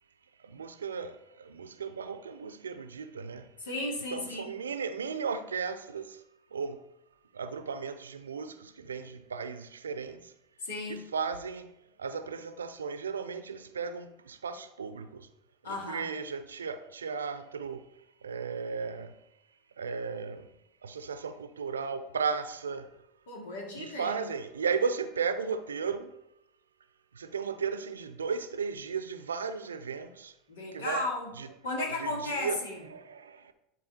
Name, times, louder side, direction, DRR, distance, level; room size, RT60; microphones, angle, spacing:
voice 1, 0.4-3.5 4.1-6.2 6.5-6.8 7.3-10.3 10.9-11.7 12.0-15.3 15.7-17.8 18.2-19.1 19.8-20.5 20.8-22.9 23.7-26.1 27.1-30.3 30.7-31.0 31.4-31.5 32.0-32.6 32.9-33.5, right 5 dB, 80° right, 0.6 m, -35 dB
voice 2, 3.6-4.5 10.6-11.1 15.6-16.0 23.3-24.3 30.5-31.3 31.6-32.8, left 2 dB, 75° left, 2.5 m, -35 dB
11.0 x 4.8 x 4.4 m
figure-of-eight pair, 75°, 0 cm